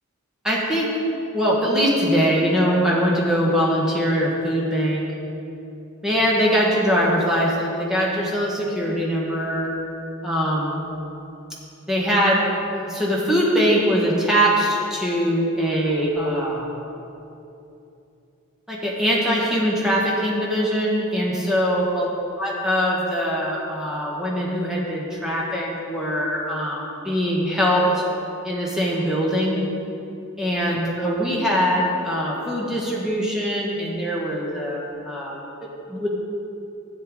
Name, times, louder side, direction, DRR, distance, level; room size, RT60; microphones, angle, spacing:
voice 1, 0.4-1.0 1.3-5.0 6.0-9.7 10.2-10.8 11.9-12.4 12.7-16.6 18.7-22.1 22.4-28.0 28.4-29.6 30.4-36.1, equal, ahead, -5 dB, 1.4 m, -22 dB
12.5 x 7.8 x 3.7 m, 2.8 s
head